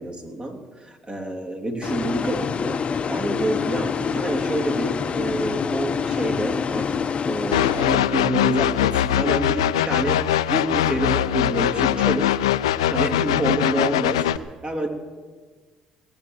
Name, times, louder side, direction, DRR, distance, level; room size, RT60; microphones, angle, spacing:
voice 1, 0.0-2.8 3.1-10.2 10.5-12.3 12.9-14.2 14.6-14.9, right 1 dB, 30° right, 2 dB, 2.8 m, -27 dB
sound 1, 1.8-8.5, left 6 dB, 40° left, 0.7 m, -26 dB
sound 2, 7.5-14.4, left 11 dB, 90° left, 0.4 m, -22 dB
18.0 x 9.0 x 7.9 m, 1.4 s
hypercardioid pair, 60°, 3 cm